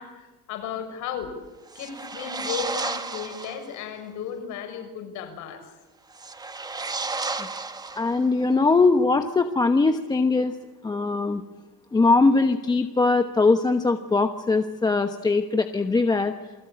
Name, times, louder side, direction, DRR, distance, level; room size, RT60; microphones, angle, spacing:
voice 1, 0.0-1.3 1.7-5.6 8.5-8.6 9.0-9.2, left 8 dB, 60° left, 7 dB, 6.4 m, -35 dB
sound 1, 1.7-3.7 6.1-8.4, right 3 dB, 10° right, 1.6 m, -33 dB
voice 2, 8.0-10.5 10.8-11.4 11.9-16.3, left 3 dB, 10° left, 7 dB, 1.1 m, -21 dB
28.5 x 21.0 x 8.7 m, 1.2 s
cardioid pair, 170°, 33 cm